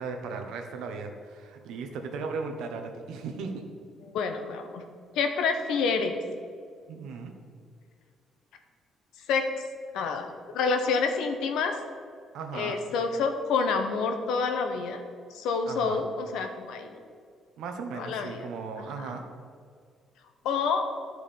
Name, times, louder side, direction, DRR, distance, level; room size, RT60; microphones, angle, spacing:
voice 1, 0.0-3.6 6.9-7.3 12.3-12.8 15.7-16.1 17.6-19.2, right 4 dB, 80° right, 4 dB, 1.2 m, -36 dB
voice 2, 4.1-4.8 5.1-6.2 9.3-9.5 9.9-10.3 10.5-11.8 12.5-15.0 15.3-16.9 17.9-18.5 20.4-20.9, left 5 dB, 85° left, 6 dB, 1.0 m, -28 dB
13.0 x 4.8 x 5.3 m, 2.1 s
cardioid pair, 175°, 0 cm